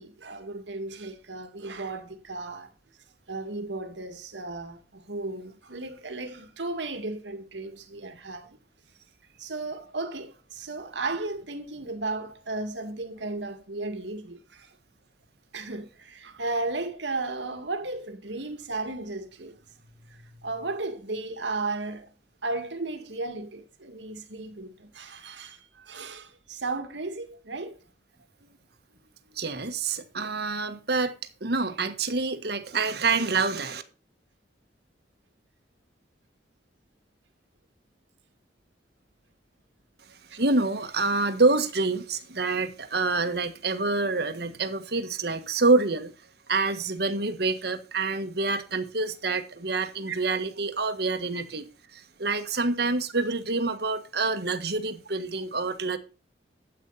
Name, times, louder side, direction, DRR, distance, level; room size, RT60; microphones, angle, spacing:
voice 1, 0.0-2.7 3.3-8.6 9.4-14.7 15.5-19.6 20.0-22.1 22.4-27.8 30.2-30.3 40.3-40.4 50.1-50.2 51.3-51.4 53.1-53.2, right 3 dB, 85° right, 2.2 m, -35 dB
voice 2, 29.3-31.1 31.4-33.8 40.4-46.1 46.5-51.6 51.9-56.0, right 3 dB, 60° right, 1.5 m, -27 dB
12.5 x 8.5 x 4.2 m
head